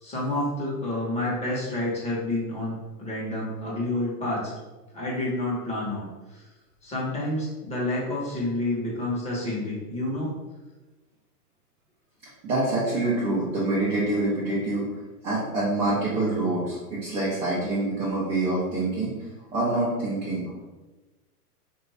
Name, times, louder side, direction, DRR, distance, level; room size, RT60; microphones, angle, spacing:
voice 1, 0.0-4.5 4.9-6.4 6.8-10.3, left 1 dB, 15° left, -5 dB, 1.1 m, -29 dB
voice 2, 12.4-14.9 15.2-19.1 19.5-20.5, right 2 dB, 15° right, -7 dB, 0.4 m, -26 dB
3.7 x 2.6 x 3.2 m, 1.1 s
hypercardioid pair, 125°, 47 cm